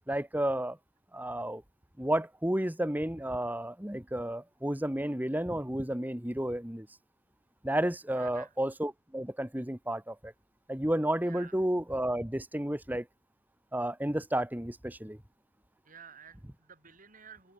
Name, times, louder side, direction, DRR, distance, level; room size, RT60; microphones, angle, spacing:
voice 1, 0.1-0.8 1.1-1.6 2.0-6.9 7.6-10.3 10.7-13.1 13.7-15.2, right 1 dB, 10° right, 1.3 m, -32 dB
voice 2, 8.1-8.5 11.2-11.6 15.8-17.5, right 7 dB, 45° right, 7.6 m, -52 dB
head